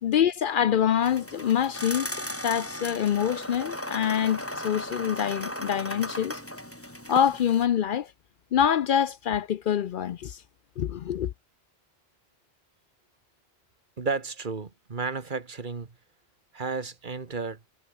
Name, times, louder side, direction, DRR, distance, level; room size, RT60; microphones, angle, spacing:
voice 1, 0.0-2.1 2.4-6.4 7.1-8.1 8.5-10.4 10.8-11.3, left 9 dB, 65° left, 0.7 m, -25 dB
sound 1, 1.0-7.7, equal, 15° left, 5.7 m, -36 dB
voice 2, 14.0-15.9 16.5-17.6, right 4 dB, 50° right, 1.6 m, -32 dB
omnidirectional pair, 1.0 m